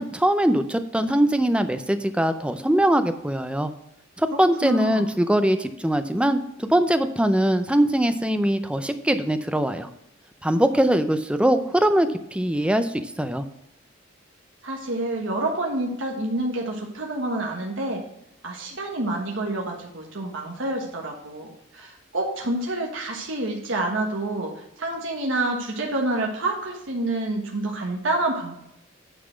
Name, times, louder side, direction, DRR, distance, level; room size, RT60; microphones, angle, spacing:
voice 1, 0.0-3.7 4.2-9.9 10.4-13.4, right 1 dB, 5° right, 9 dB, 0.5 m, -22 dB
voice 2, 4.6-5.1 14.6-18.0 18.4-28.6, right 2 dB, 75° right, 0 dB, 1.3 m, -28 dB
9.5 x 4.1 x 6.1 m, 0.81 s
head